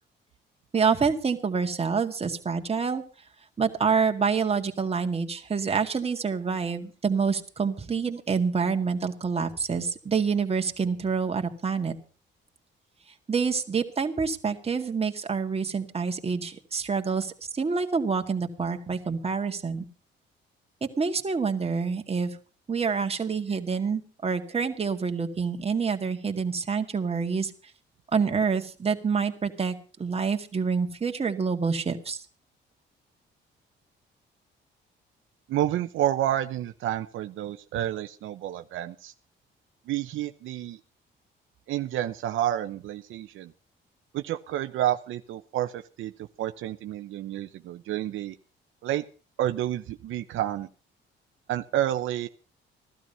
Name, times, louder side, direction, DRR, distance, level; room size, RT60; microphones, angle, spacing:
voice 1, 0.7-3.0 3.6-12.0 13.3-19.8 20.8-22.3 22.7-27.5 28.1-32.2, right 5 dB, 30° right, 4 dB, 1.9 m, -27 dB
voice 2, 35.5-39.1 39.9-40.8 41.7-43.5 44.1-46.1 46.4-48.4 48.8-49.0 49.4-50.7 51.5-52.3, right 12 dB, 80° right, 8 dB, 0.8 m, -29 dB
15.5 x 12.5 x 5.5 m, 0.37 s
cardioid pair, 90°, 20 cm